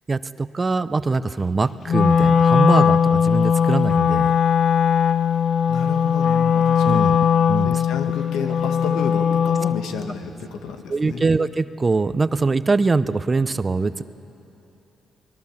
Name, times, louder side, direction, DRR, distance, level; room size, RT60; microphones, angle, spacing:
voice 1, 0.1-4.4 6.8-7.2 7.5-7.8 10.9-14.0, right 3 dB, 30° right, 14 dB, 0.6 m, -22 dB
Wind instrument woodwind instrument, 1.9-9.9, left 7 dB, 50° left, 0.5 m, -19 dB
voice 2, 5.0-5.4 5.7-7.2 7.6-11.3, left 6 dB, 85° left, 5 dB, 1.7 m, -31 dB
24.0 x 20.5 x 7.3 m, 2.9 s
cardioid pair, 90°, 0 cm